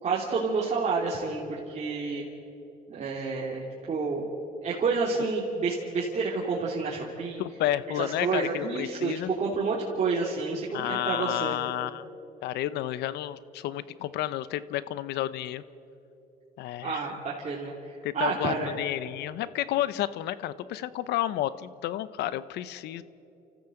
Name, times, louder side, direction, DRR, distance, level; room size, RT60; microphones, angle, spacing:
voice 1, 0.0-2.2 2.9-4.3 4.6-7.4 7.9-11.5 16.8-18.7, right 4 dB, 40° right, -4 dB, 3.0 m, -29 dB
voice 2, 7.4-9.3 10.7-12.1 12.4-15.6 16.6-17.0 18.0-23.0, left 13 dB, 80° left, 16 dB, 0.8 m, -31 dB
29.5 x 14.5 x 7.9 m, 3.0 s
cardioid pair, 110°, 17 cm